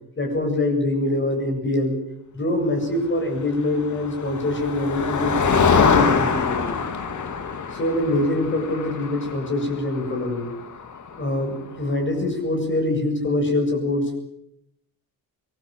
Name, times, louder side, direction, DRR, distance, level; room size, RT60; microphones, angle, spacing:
voice 1, 0.2-2.0 2.3-6.6 7.7-10.5 11.2-14.2, left 1 dB, 30° left, 2 dB, 7.9 m, -24 dB
Motor vehicle (road), 3.7-11.4, left 5 dB, 50° left, 2.9 m, -24 dB
25.5 x 21.0 x 7.8 m, 0.75 s
cardioid pair, 130°, 37 cm